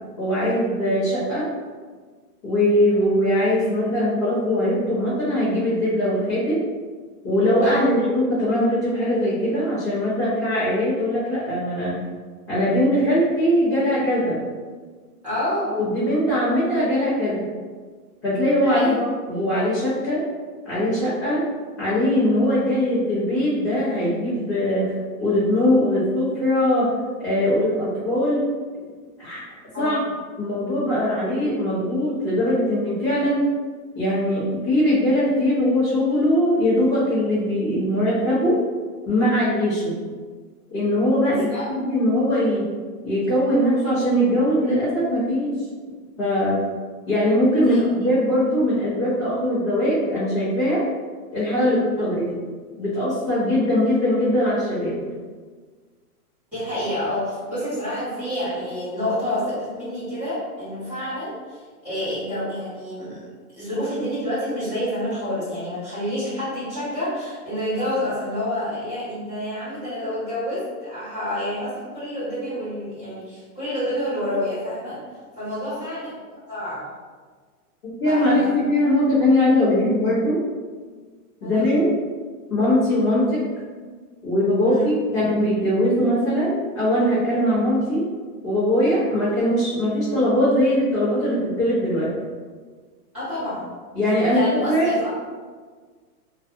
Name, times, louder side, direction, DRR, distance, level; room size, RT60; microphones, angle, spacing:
voice 1, 0.2-1.5 2.4-6.6 7.2-11.9 12.5-14.4 15.7-17.5 18.2-20.3 20.6-21.5 21.8-26.9 27.2-28.5 29.2-29.4 29.8-30.0 30.4-33.4 33.9-38.6 39.1-40.0 40.7-41.5 41.7-42.7 43.0-45.6 46.2-46.7 47.1-50.8 51.3-52.4 52.8-55.0 77.8-80.4 81.4-82.0 82.5-83.4 84.2-88.1 88.4-92.1 93.9-95.0, left 1 dB, 20° left, -16 dB, 0.5 m, -21 dB
voice 2, 7.6-8.0 15.2-15.7 18.6-19.0 29.7-30.0 41.2-41.6 47.6-47.8 56.5-63.2 63.5-75.0 75.4-76.1 76.5-76.8 78.0-78.8 81.4-81.7 84.6-84.9 93.1-93.7 94.3-95.1, left 1 dB, 5° right, -17 dB, 1.4 m, -28 dB
2.6 x 2.3 x 2.5 m, 1.5 s
hypercardioid pair, 165°, 47 cm